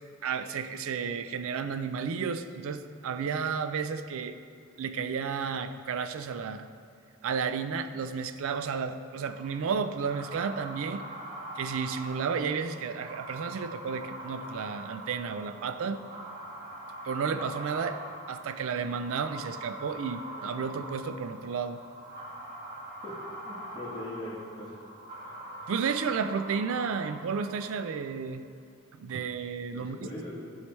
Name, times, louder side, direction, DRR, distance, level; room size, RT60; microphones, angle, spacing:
voice 1, 0.2-4.3 4.8-6.7 7.2-11.0 11.6-16.0 17.0-18.0 18.3-21.8 25.7-28.4 29.0-30.0, right 6 dB, 65° right, 10 dB, 0.4 m, -32 dB
sound 1, 9.2-28.1, right 1 dB, 45° right, 1.7 m, -43 dB
voice 2, 23.4-24.8 29.7-30.4, left 1 dB, 25° left, -8 dB, 1.7 m, -40 dB
11.5 x 4.8 x 3.2 m, 2.3 s
head